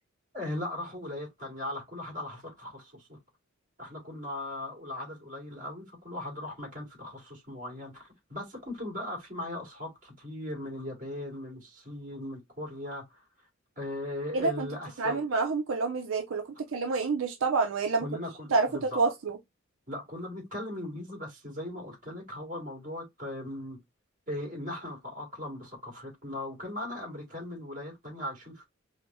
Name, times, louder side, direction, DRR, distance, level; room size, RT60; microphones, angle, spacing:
voice 1, 0.3-3.2 3.8-13.2 13.8-15.3 18.0-19.0 19.9-23.8 24.3-28.6, left 1 dB, 45° right, 2.2 m, -38 dB
voice 2, 14.3-14.7 15.0-18.1 18.5-19.4, right 4 dB, 85° right, 0.6 m, -28 dB
4.9 x 2.1 x 2.6 m
head